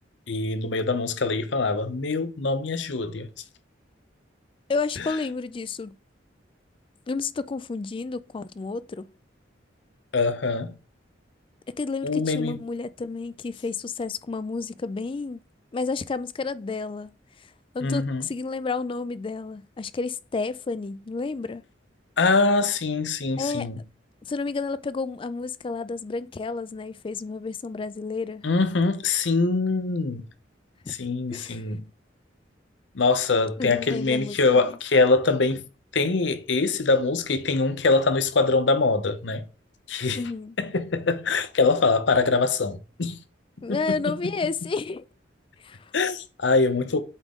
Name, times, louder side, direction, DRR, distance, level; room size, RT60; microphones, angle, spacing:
voice 1, 0.3-3.3 5.0-5.1 10.1-10.7 12.0-12.6 17.8-18.3 22.2-23.8 28.4-30.3 30.9-31.8 32.9-35.6 35.9-39.4 39.9-40.2 40.6-43.2 43.7-43.8 44.1-44.2 45.9-47.0, left 3 dB, 70° left, 0.8 m, -23 dB
voice 2, 4.7-6.0 7.1-9.1 11.7-15.4 15.7-17.1 17.4-17.5 17.7-21.6 23.4-23.7 24.2-28.5 30.8-31.0 31.3-31.6 33.6-34.4 40.1-40.6 43.6-45.1 45.6-45.9, left 4 dB, 30° left, 0.3 m, -31 dB
8.2 x 3.7 x 3.6 m
head